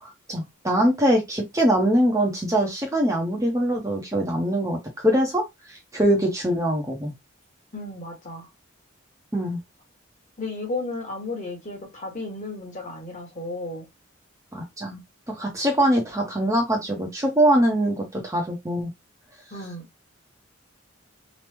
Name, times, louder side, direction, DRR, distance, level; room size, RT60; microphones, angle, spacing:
voice 1, 0.0-5.4 5.7-7.1 9.3-9.6 14.5-15.0 15.3-18.9, right 1 dB, 15° right, 0.6 m, -23 dB
voice 2, 7.7-8.5 10.4-13.9 19.5-19.9, left 2 dB, 35° left, 1.1 m, -33 dB
3.0 x 2.0 x 3.3 m
head